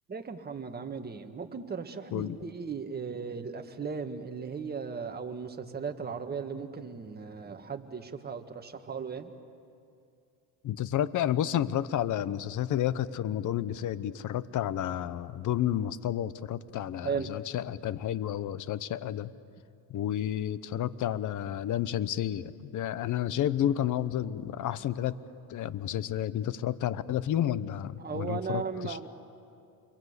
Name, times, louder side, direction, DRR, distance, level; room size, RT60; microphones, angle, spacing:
voice 1, 0.1-9.3 17.0-17.3 28.0-29.1, right 5 dB, 20° right, 5 dB, 1.8 m, -36 dB
voice 2, 10.6-19.3 19.9-25.2 25.5-29.0, left 11 dB, 45° left, 16 dB, 0.9 m, -31 dB
28.5 x 23.0 x 8.2 m, 2.5 s
supercardioid pair, 105°, 44 cm